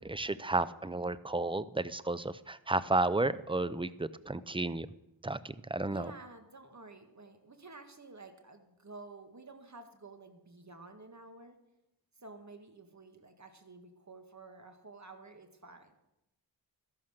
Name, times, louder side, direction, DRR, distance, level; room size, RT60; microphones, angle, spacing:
voice 1, 0.0-4.9 5.2-6.1, right 2 dB, 10° right, 15 dB, 0.5 m, -32 dB
voice 2, 5.9-11.6 12.2-15.9, right 3 dB, 35° right, 6 dB, 2.0 m, -51 dB
13.5 x 11.5 x 6.6 m, 0.89 s
cardioid pair, 65°, 47 cm